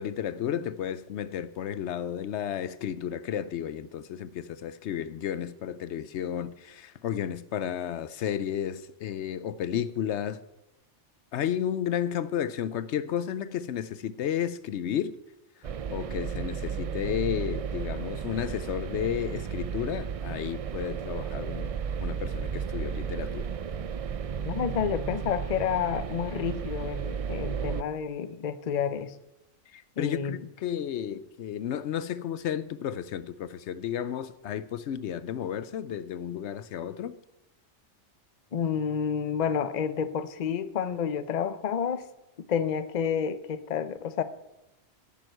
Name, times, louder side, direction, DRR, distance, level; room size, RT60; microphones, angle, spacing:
voice 1, 0.0-10.4 11.3-15.2 15.6-21.7 22.0-23.5 29.7-37.2, left 9 dB, 75° left, 0.9 m, -32 dB
sound 1, 15.6-27.8, right 7 dB, 65° right, 0.3 m, -33 dB
voice 2, 24.4-29.1 30.0-30.4 38.5-42.1 42.5-44.2, left 7 dB, 45° left, 0.7 m, -29 dB
10.5 x 9.2 x 6.6 m
omnidirectional pair, 1.2 m